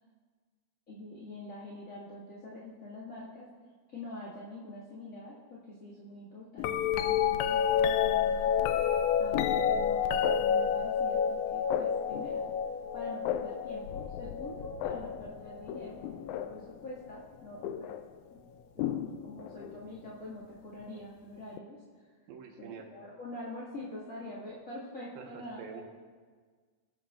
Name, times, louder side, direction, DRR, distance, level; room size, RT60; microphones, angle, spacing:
voice 1, 0.9-3.5 3.9-8.7 9.2-12.4 12.9-17.9 18.7-21.8 22.6-25.8, left 1 dB, 30° left, -8 dB, 1.7 m, -45 dB
sound 1, 6.6-16.7 17.6-18.0 18.8-19.8 21.6-21.7, left 8 dB, 90° left, 1.7 m, -30 dB
voice 2, 22.3-22.9 25.2-25.8, right 6 dB, 90° right, 2 dB, 3.0 m, -46 dB
23.5 x 8.6 x 2.4 m, 1.5 s
omnidirectional pair, 3.9 m